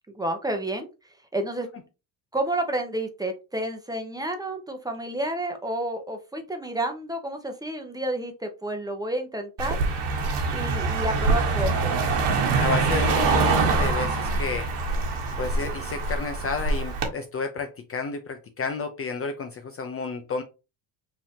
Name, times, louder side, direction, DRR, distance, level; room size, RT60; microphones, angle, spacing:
voice 1, 0.1-0.9 1.3-1.7 2.3-9.8 10.5-11.9, right 1 dB, 10° right, 5 dB, 0.8 m, -30 dB
Car passing by, 9.6-17.1, right 3 dB, 70° right, 1.3 m, -24 dB
voice 2, 12.6-14.7 15.4-20.4, left 4 dB, 30° left, 5 dB, 0.5 m, -31 dB
5.4 x 2.9 x 2.8 m, 0.29 s
cardioid pair, 110°, 43 cm